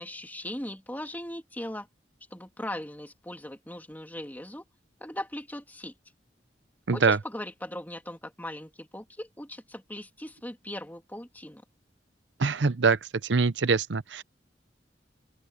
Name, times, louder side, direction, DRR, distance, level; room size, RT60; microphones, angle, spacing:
voice 1, 0.0-1.9 2.3-4.6 5.0-5.9 6.9-11.6, left 1 dB, 10° left, 2.8 m, -39 dB
voice 2, 6.9-7.2 12.4-14.2, right 4 dB, 80° right, 0.8 m, -24 dB
open air
head